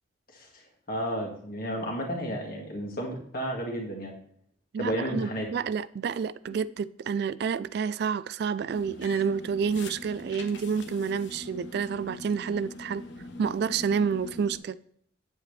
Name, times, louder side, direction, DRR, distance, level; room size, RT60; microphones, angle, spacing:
voice 1, 0.3-0.6 0.9-4.2 4.8-5.5, equal, 50° left, 2.0 m, -32 dB
voice 2, 4.7-13.0 13.4-14.8, right 6 dB, 60° right, 0.3 m, -29 dB
sound 1, 8.7-14.6, left 2 dB, 65° left, 1.1 m, -43 dB
9.0 x 8.4 x 3.3 m
head